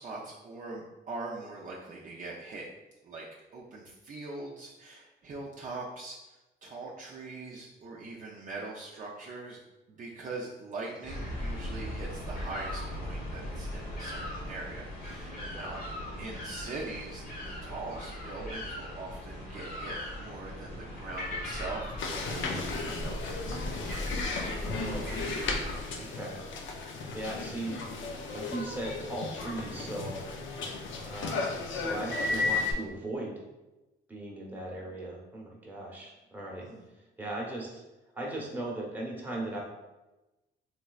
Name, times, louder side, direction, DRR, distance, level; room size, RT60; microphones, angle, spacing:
voice 1, 0.0-2.7 3.0-3.3 3.5-9.6 9.9-15.8 16.2-24.0 36.6-36.8, right 3 dB, 40° right, -3 dB, 0.5 m, -42 dB
sound 1, 11.0-25.8, left 1 dB, 45° left, 1.1 m, -38 dB
voice 2, 15.3-15.9 24.5-25.3 25.9-26.4 27.1-27.8 28.3-30.2 31.0-33.4 34.1-36.6 37.2-37.8 38.1-39.6, right 1 dB, 10° right, -3 dB, 0.9 m, -38 dB
sound 2, 22.0-32.7, left 3 dB, 75° left, 0.5 m, -35 dB
3.2 x 3.1 x 2.3 m, 1.1 s
cardioid pair, 90°, 20 cm